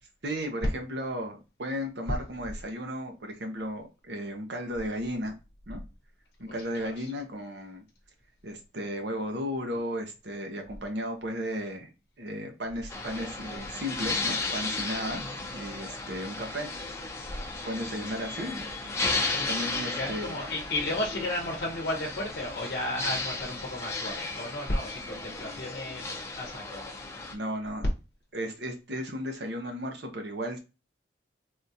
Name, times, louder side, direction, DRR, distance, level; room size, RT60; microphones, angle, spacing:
voice 1, 0.2-5.3 5.7-5.8 6.4-7.8 8.4-11.9 12.2-16.7 17.6-18.6 19.5-20.3 27.3-27.9 28.3-30.6, equal, 70° right, 4 dB, 0.7 m, -35 dB
voice 2, 6.5-7.1 15.2-15.4 18.0-18.3 19.2-26.8, left 1 dB, 60° left, 0 dB, 0.8 m, -34 dB
sound 1, 12.9-27.3, left 3 dB, 15° left, 0.7 m, -34 dB
3.6 x 2.4 x 2.7 m, 0.28 s
head